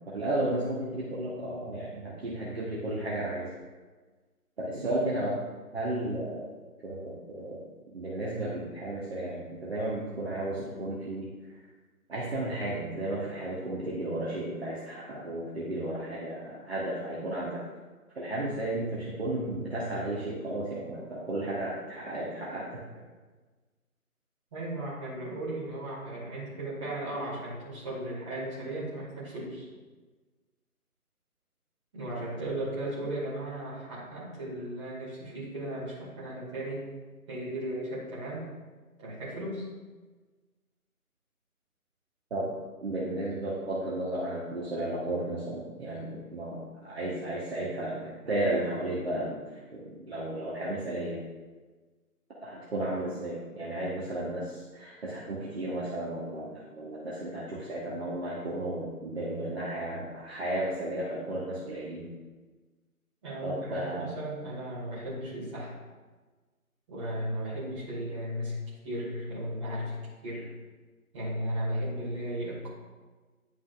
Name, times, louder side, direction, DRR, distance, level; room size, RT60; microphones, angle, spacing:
voice 1, 0.1-3.5 4.6-5.4 5.7-6.5 6.8-11.6 12.1-17.6 18.1-22.8 42.3-42.5 42.8-51.2 52.4-62.1 63.4-64.1, right 1 dB, 45° right, -7 dB, 1.5 m, -33 dB
voice 2, 24.5-29.7 31.9-36.8 37.3-38.5 39.0-39.6 63.2-65.7 66.9-68.5 68.8-69.9 70.2-70.5 71.1-72.7, right 1 dB, 20° right, -8 dB, 2.4 m, -35 dB
10.5 x 6.0 x 2.6 m, 1.3 s
figure-of-eight pair, 155°, 45 cm